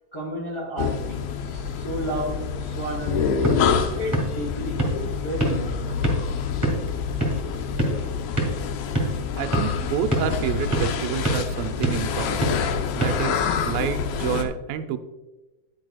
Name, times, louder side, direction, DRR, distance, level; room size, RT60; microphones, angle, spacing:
voice 1, 0.1-3.6 4.0-6.3, equal, 50° left, -3 dB, 0.8 m, -32 dB
sound 1, 0.8-14.4, left 6 dB, 80° left, 2.6 m, -27 dB
sound 2, 3.1-13.9, right 1 dB, 15° right, 1.0 m, -29 dB
voice 2, 9.4-12.5 12.9-15.0, right 9 dB, 85° right, 8 dB, 2.3 m, -29 dB
10.0 x 9.1 x 2.3 m, 1.1 s
omnidirectional pair, 4.2 m